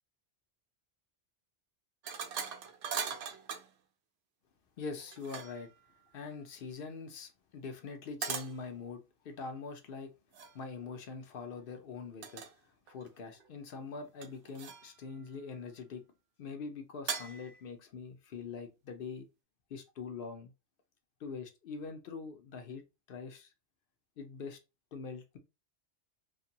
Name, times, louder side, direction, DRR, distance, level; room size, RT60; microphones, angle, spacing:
sound 1, 2.0-3.7 5.0-5.7 8.2-8.6 10.3-10.6 12.2-12.5 12.9-13.5 14.2-15.0 17.1-17.6, right 6 dB, 80° right, 0.9 m, -40 dB
voice 1, 4.8-5.7 6.1-10.1 10.5-12.4 12.9-16.0 16.4-19.3 19.7-20.5 21.2-23.5 24.2-24.6 24.9-25.4, left 5 dB, 60° left, 0.6 m, -43 dB
2.6 x 2.5 x 2.8 m
omnidirectional pair, 1.2 m